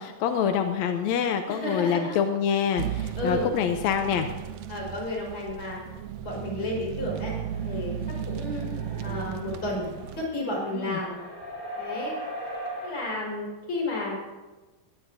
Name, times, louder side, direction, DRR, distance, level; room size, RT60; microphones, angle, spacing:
voice 1, 0.0-4.3 10.8-11.0, left 8 dB, 75° left, 6 dB, 1.7 m, -26 dB
voice 2, 1.5-2.2 3.2-3.5 4.7-5.8 6.2-7.9 8.3-8.7 9.0-9.9 10.2-11.2 11.8-12.2 12.8-14.3, left 1 dB, 40° left, -3 dB, 5.6 m, -32 dB
sound 1, 2.8-10.3, right 9 dB, 80° right, 1.7 m, -35 dB
sound 2, 7.1-13.0, equal, 5° left, 3.5 m, -40 dB
21.5 x 17.0 x 2.7 m, 1.2 s
omnidirectional pair, 3.8 m